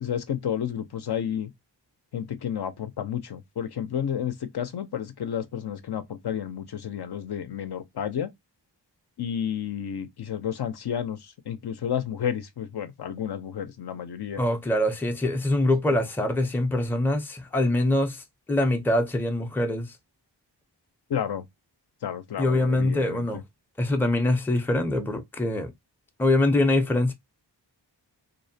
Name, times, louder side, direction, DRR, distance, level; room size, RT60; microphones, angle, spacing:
voice 1, 0.0-1.5 2.1-8.3 9.2-14.4 21.1-21.4 22.0-23.4, left 9 dB, 65° left, 0.5 m, -31 dB
voice 2, 14.4-18.2 18.5-19.9 22.4-23.4 23.8-25.7 26.2-27.1, left 1 dB, 5° left, 0.4 m, -24 dB
2.6 x 2.1 x 2.6 m
wide cardioid pair, 60°, 43 cm